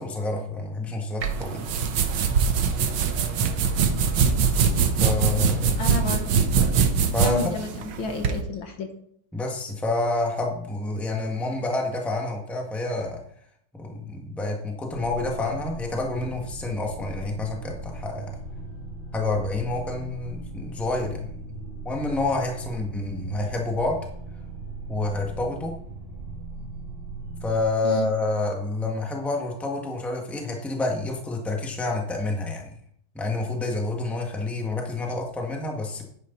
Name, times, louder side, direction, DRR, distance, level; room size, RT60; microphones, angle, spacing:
voice 1, 0.0-1.7 5.0-5.9 7.1-7.5 9.3-13.2 13.7-18.4 19.1-21.3 21.8-24.0 24.9-25.7 27.4-32.7 33.1-36.0, left 2 dB, ahead, 0 dB, 1.5 m, -28 dB
sound 1, 1.2-8.4, right 6 dB, 70° right, 1.8 m, -23 dB
voice 2, 5.8-6.4 7.2-8.9 27.8-28.1, left 3 dB, 65° left, 5 dB, 2.0 m, -32 dB
sound 2, 14.9-27.6, right 2 dB, 25° right, 3.2 m, -38 dB
10.0 x 9.8 x 4.1 m, 0.65 s
omnidirectional pair, 2.4 m